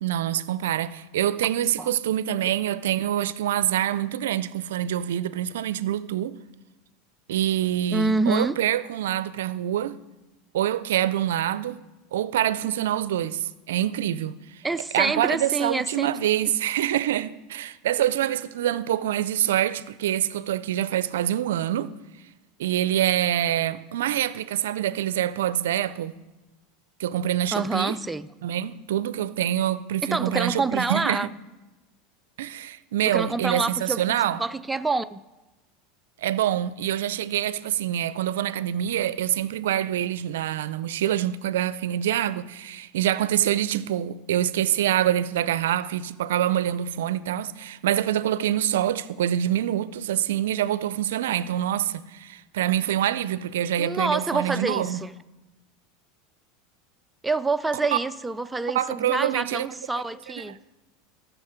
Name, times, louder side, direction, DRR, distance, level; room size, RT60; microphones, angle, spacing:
voice 1, 0.0-6.4 7.3-10.0 10.5-11.8 12.1-14.4 14.9-21.9 22.6-26.1 27.0-27.9 28.4-31.3 32.4-34.4 36.2-55.0 58.7-59.7, right 11 dB, 85° right, 0.4 m, -25 dB
voice 2, 7.9-8.5 14.6-16.1 27.5-28.3 30.0-31.3 33.0-35.2 53.8-55.1 57.2-60.6, right 3 dB, 10° right, 0.3 m, -27 dB
13.5 x 6.3 x 5.0 m
supercardioid pair, 110°, 0 cm